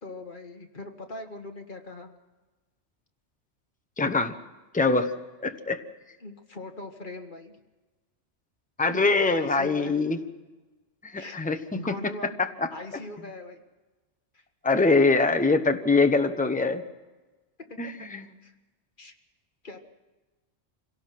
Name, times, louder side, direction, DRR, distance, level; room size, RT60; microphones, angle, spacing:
voice 1, 0.0-2.1 6.2-7.5 8.8-10.0 11.2-11.4 11.7-12.3 12.7-13.6 14.3-14.4 17.7-17.8 18.4-18.5 19.0-19.1 19.6-19.8, left 2 dB, 45° left, 4 dB, 1.9 m, -40 dB
voice 2, 4.0-4.3 4.7-5.1 5.4-5.8 8.8-10.2 11.0-11.6 12.4-12.7 14.6-16.8 17.8-18.2, left 3 dB, 5° left, 7 dB, 0.9 m, -23 dB
26.0 x 17.5 x 6.0 m, 1.2 s
omnidirectional pair, 1.2 m